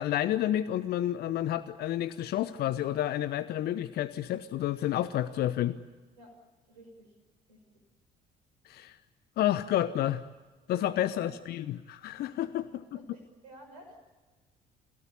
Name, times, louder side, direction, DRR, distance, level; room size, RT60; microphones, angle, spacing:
voice 1, 0.0-5.8 8.6-9.0 9.4-10.2 10.7-12.7, left 12 dB, 50° left, 13 dB, 0.9 m, -30 dB
voice 2, 6.7-7.1 7.5-7.8 10.8-11.5 12.3-12.5 12.9-14.0, right 1 dB, 75° right, 4 dB, 6.2 m, -53 dB
29.5 x 17.0 x 9.9 m, 1.3 s
figure-of-eight pair, 50°, 21 cm